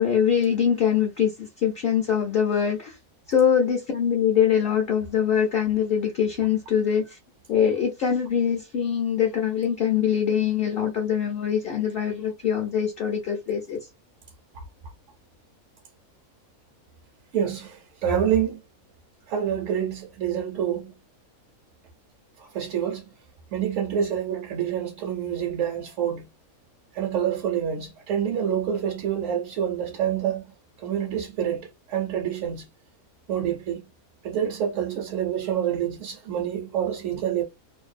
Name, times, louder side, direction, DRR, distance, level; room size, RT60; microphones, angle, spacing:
voice 1, 0.0-3.0 3.3-7.2 7.5-13.8, left 8 dB, 60° left, 0.6 m, -23 dB
voice 2, 17.3-18.6 19.3-20.9 22.5-23.0 23.5-26.3 26.9-30.4 30.8-32.7 33.3-33.8 34.2-37.4, right 9 dB, 65° right, 0.9 m, -27 dB
2.6 x 2.1 x 2.4 m
omnidirectional pair, 1.6 m